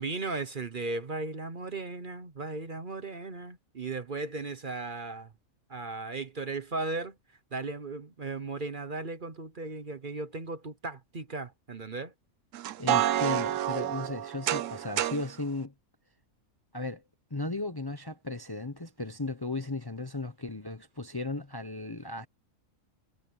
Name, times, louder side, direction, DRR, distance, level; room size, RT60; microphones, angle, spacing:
voice 1, 0.0-5.3 5.7-7.1 7.5-12.1, right 3 dB, 40° right, 1.1 m, -36 dB
sound 1, 12.5-15.3, right 11 dB, 70° right, 1.0 m, -29 dB
voice 2, 12.8-15.7 16.7-17.0 17.3-22.3, left 2 dB, 20° left, 0.9 m, -35 dB
omnidirectional pair, 1.4 m